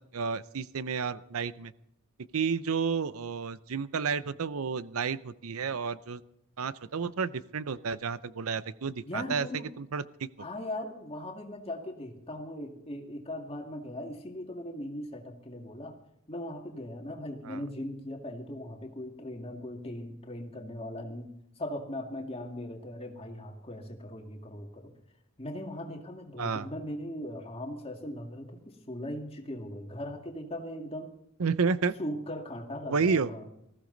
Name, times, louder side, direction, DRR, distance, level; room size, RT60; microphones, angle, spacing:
voice 1, 0.1-1.7 2.3-6.2 6.6-9.5 9.8-10.0 17.4-17.6 26.4-26.7 31.4-31.9 32.9-33.3, right 5 dB, 70° right, 16 dB, 0.6 m, -31 dB
voice 2, 9.1-9.7 10.4-15.9 16.3-24.9 25.4-31.1 32.0-33.4, left 1 dB, 25° left, 3 dB, 2.2 m, -39 dB
19.5 x 15.0 x 4.0 m, 0.80 s
head